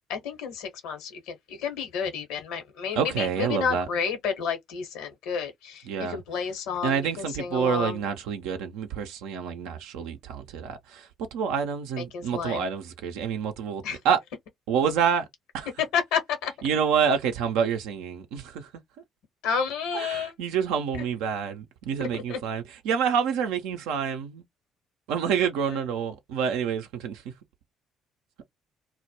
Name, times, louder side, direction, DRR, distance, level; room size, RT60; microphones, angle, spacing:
voice 1, 0.1-8.0 12.1-12.7 13.8-14.0 15.9-16.5 19.4-20.3 22.1-22.4 25.7-25.8, left 6 dB, 75° left, 0.9 m, -31 dB
voice 2, 3.0-3.9 5.9-6.2 6.8-14.2 14.7-15.3 15.5-15.7 16.6-18.7 19.9-24.4 25.1-27.2, right 7 dB, 75° right, 0.5 m, -27 dB
2.1 x 2.1 x 2.8 m
hypercardioid pair, 50°, 0 cm